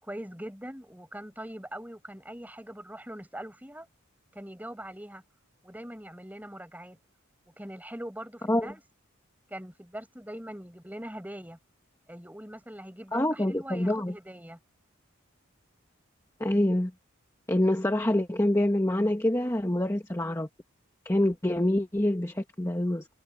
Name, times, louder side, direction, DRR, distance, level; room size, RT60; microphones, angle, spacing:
voice 1, 0.0-3.9 4.3-5.2 5.6-7.0 7.6-8.8 9.5-11.6 12.1-14.6, right 1 dB, 10° right, 5.4 m, -42 dB
voice 2, 13.1-14.1 16.4-16.9 17.5-20.5 21.0-23.1, left 1 dB, 15° left, 1.1 m, -26 dB
head